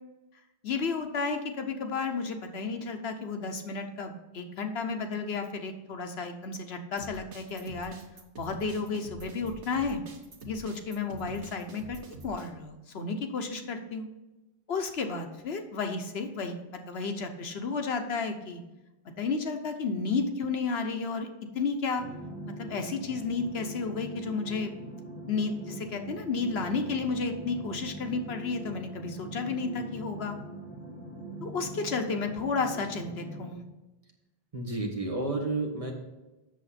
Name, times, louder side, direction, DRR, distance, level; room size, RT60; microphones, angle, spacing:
voice 1, 0.6-8.0 8.4-10.0 10.4-14.1 14.7-16.6 16.9-18.6 19.2-21.3 21.5-22.0 22.5-24.7 25.3-30.4 31.4-33.6, left 4 dB, 70° left, 6 dB, 1.1 m, -32 dB
sound 1, 7.0-12.5, right 2 dB, 90° right, 1.4 m, -46 dB
sound 2, 22.0-33.5, right 1 dB, 10° left, 1.4 m, -42 dB
voice 2, 34.5-35.9, right 2 dB, 30° right, 1 dB, 1.4 m, -31 dB
7.9 x 6.7 x 4.2 m, 1.1 s
omnidirectional pair, 1.1 m